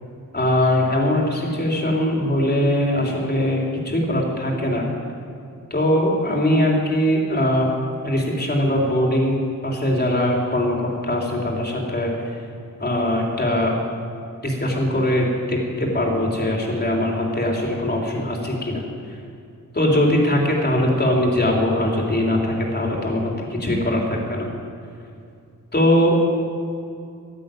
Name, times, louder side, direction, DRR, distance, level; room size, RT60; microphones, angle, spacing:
voice 1, 0.3-4.9 5.7-7.7 8.0-9.4 9.6-10.8 11.0-12.1 12.8-13.8 14.4-18.8 19.7-24.5 25.7-26.2, left 1 dB, 30° left, -1 dB, 3.7 m, -21 dB
12.5 x 12.5 x 9.3 m, 2.5 s
wide cardioid pair, 85°, 33 cm